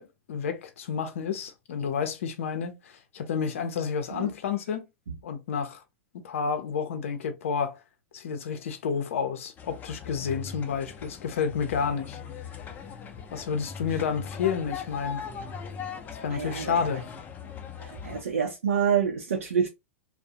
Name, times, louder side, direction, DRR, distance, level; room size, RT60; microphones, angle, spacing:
voice 1, 0.0-4.9 5.2-5.8 6.2-7.8 8.1-12.6 13.3-15.2 16.1-17.0, left 6 dB, 75° left, 0.5 m, -30 dB
sound 1, 9.6-18.2, left 6 dB, 25° left, 0.5 m, -40 dB
voice 2, 16.3-16.8 17.8-19.7, right 7 dB, 90° right, 0.5 m, -27 dB
2.3 x 2.0 x 2.7 m
hypercardioid pair, 110°, 7 cm